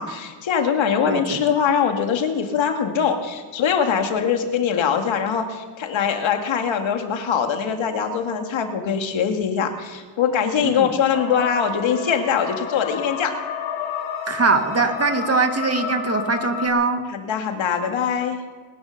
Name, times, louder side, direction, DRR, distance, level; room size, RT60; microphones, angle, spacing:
voice 1, 0.0-13.4 17.1-18.4, left 7 dB, 65° left, 4 dB, 2.3 m, -22 dB
voice 2, 1.0-1.4 10.6-10.9 14.3-17.0, right 4 dB, 30° right, 6 dB, 2.0 m, -22 dB
sound 1, 11.1-16.7, left 7 dB, 90° left, 3.0 m, -31 dB
21.5 x 9.7 x 6.7 m, 1.5 s
cardioid pair, 85°, 49 cm